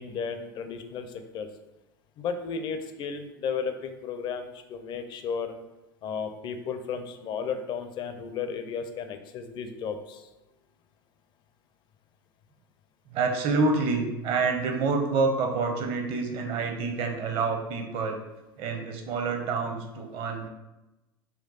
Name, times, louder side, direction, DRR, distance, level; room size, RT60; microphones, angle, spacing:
voice 1, 0.0-1.5 2.2-5.5 6.0-10.3, left 6 dB, 40° left, 8 dB, 0.5 m, -34 dB
voice 2, 13.1-18.2 18.6-20.5, right 4 dB, 45° right, 4 dB, 0.7 m, -27 dB
4.4 x 2.3 x 3.9 m, 1.0 s
figure-of-eight pair, 80°, 12 cm